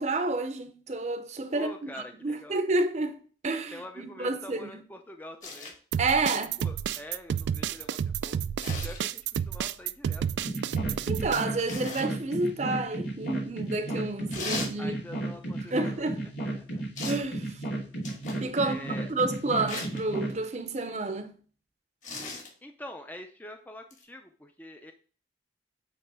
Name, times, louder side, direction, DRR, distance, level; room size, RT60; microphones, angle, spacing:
voice 1, 0.0-3.2 3.4-4.7 6.0-6.5 11.1-14.9 15.7-16.2 17.0-17.6 18.4-21.4, right 3 dB, 40° right, 0.7 m, -30 dB
voice 2, 1.5-2.6 3.7-5.7 6.3-8.4 8.7-10.3 14.8-16.0 16.4-16.8 18.6-19.1 22.6-24.9, left 1 dB, 10° left, 0.5 m, -45 dB
sound 1, 5.4-5.7 8.6-9.0 11.7-12.1 14.3-14.7 17.0-17.3 18.0-18.4 19.7-20.0 22.0-22.5 23.9-24.0, left 3 dB, 45° left, 1.9 m, -37 dB
sound 2, 5.9-11.4, right 8 dB, 85° right, 0.3 m, -30 dB
sound 3, 10.4-20.4, right 2 dB, 85° left, 2.4 m, -34 dB
8.7 x 3.1 x 4.7 m
head